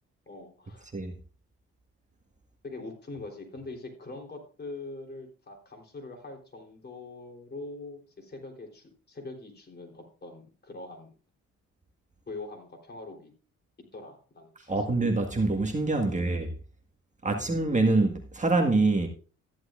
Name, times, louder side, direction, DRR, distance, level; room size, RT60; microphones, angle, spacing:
voice 1, 0.3-0.9 2.6-11.1 12.3-13.3 13.9-14.8 16.0-16.2 17.2-17.6, left 2 dB, 35° left, 3.7 m, -43 dB
voice 2, 14.7-16.5 17.2-19.1, right 2 dB, 25° right, 1.7 m, -25 dB
14.0 x 11.0 x 2.5 m
cardioid pair, 90°, 30 cm